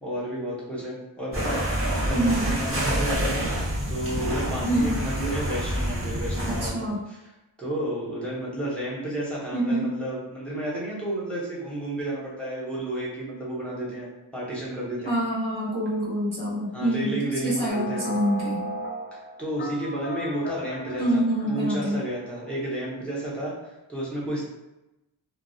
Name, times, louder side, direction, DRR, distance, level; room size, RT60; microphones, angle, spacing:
voice 1, 0.0-1.6 2.0-3.5 3.9-6.9 7.6-14.1 14.3-15.1 16.7-18.1 19.1-24.4, right 1 dB, ahead, -7 dB, 0.8 m, -31 dB
sound 1, 1.3-6.7, equal, 30° right, 0.8 m, -27 dB
voice 2, 2.1-2.6 4.6-5.0 6.4-7.0 9.5-9.9 15.0-18.7 21.0-22.0, right 1 dB, 90° right, -6 dB, 0.9 m, -26 dB
sound 2, 17.7-22.2, left 1 dB, 25° left, 0.4 m, -36 dB
2.3 x 2.0 x 2.7 m, 0.97 s
wide cardioid pair, 45°, 46 cm